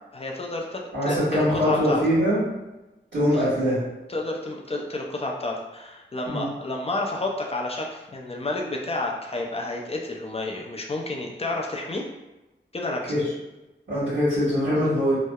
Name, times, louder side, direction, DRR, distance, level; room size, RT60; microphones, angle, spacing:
voice 1, 0.1-2.0 3.3-3.4 4.1-12.0 12.7-13.1, left 2 dB, 30° left, 0 dB, 0.4 m, -30 dB
voice 2, 0.9-2.4 3.1-3.8 6.3-6.5 13.1-13.2 13.9-15.2, equal, 70° right, -14 dB, 1.2 m, -22 dB
2.7 x 2.0 x 2.3 m, 1.0 s
wide cardioid pair, 60°, 20 cm